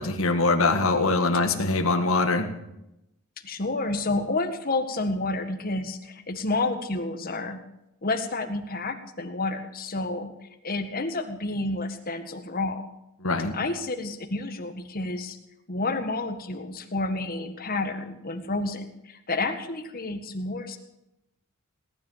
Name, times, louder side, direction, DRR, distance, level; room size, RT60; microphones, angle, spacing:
voice 1, 0.0-2.5 13.2-13.6, left 3 dB, 70° left, 5 dB, 1.9 m, -23 dB
voice 2, 3.4-7.6 8.0-10.3 10.6-12.9 13.5-15.4 15.7-20.8, left 2 dB, 45° left, 6 dB, 1.7 m, -30 dB
18.5 x 10.5 x 7.4 m, 0.87 s
head